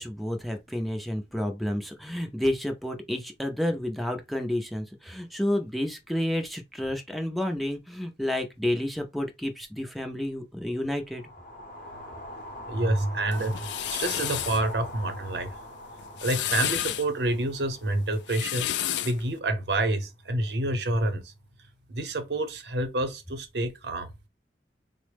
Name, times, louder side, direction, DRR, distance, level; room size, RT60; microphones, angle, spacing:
voice 1, 0.0-11.3, left 1 dB, ahead, 0.4 m, -30 dB
sound 1, 11.1-19.3, left 1 dB, 50° left, 0.7 m, -43 dB
voice 2, 12.7-15.5 16.2-18.7 19.0-21.2 21.9-24.1, right 2 dB, 70° right, 0.7 m, -28 dB
sound 2, 13.3-14.6 16.0-17.1 18.1-19.2, left 11 dB, 85° left, 0.3 m, -31 dB
3.9 x 2.0 x 3.2 m
head